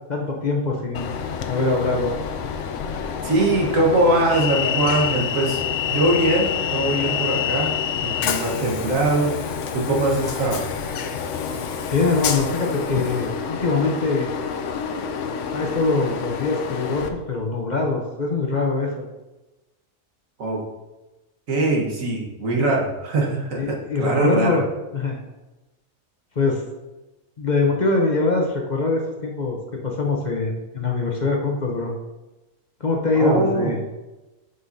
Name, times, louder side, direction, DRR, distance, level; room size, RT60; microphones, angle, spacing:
voice 1, 0.1-1.1 1.5-2.1 11.9-14.3 15.5-18.9 23.6-24.6 24.9-25.2 26.4-26.6 27.4-29.6 29.8-31.9 32.8-33.8, left 3 dB, 40° left, 0 dB, 0.9 m, -23 dB
Train, 0.9-17.1, left 7 dB, 70° left, 0.9 m, -27 dB
voice 2, 3.2-9.4 9.7-10.7 20.4-20.6 21.5-24.6 33.1-33.8, right 2 dB, 85° right, -2 dB, 1.8 m, -22 dB
9.6 x 5.5 x 2.8 m, 1.1 s
omnidirectional pair, 1.4 m